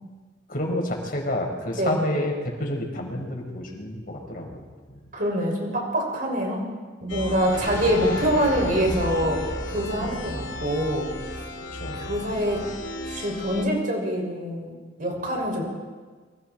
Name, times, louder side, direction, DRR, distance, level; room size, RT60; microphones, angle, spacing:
voice 1, 0.5-5.0 8.1-8.2 9.9-10.2 11.7-12.1, left 1 dB, 45° left, 1 dB, 5.2 m, -30 dB
voice 2, 5.1-6.6 7.0-9.4 9.7-11.1 11.9-12.7 13.1-15.6, equal, 45° right, 0 dB, 6.3 m, -25 dB
sound 1, 7.1-13.6, left 1 dB, 70° left, 2.7 m, -34 dB
sound 2, 7.5-11.5, equal, 15° left, 5.9 m, -36 dB
29.0 x 24.5 x 4.5 m, 1.4 s
head